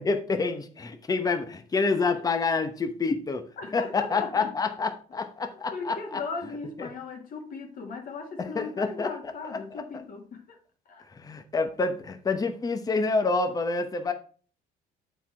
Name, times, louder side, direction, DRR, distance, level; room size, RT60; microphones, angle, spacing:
voice 1, 0.0-3.4 3.7-6.2 6.8-6.9 8.4-9.1 9.5-9.6 11.1-14.1, left 4 dB, 20° left, 7 dB, 0.9 m, -27 dB
voice 2, 3.6-4.5 5.7-10.6 10.9-11.0, left 4 dB, 55° left, 3 dB, 2.0 m, -38 dB
8.1 x 4.7 x 4.4 m, 0.42 s
cardioid pair, 110°, 17 cm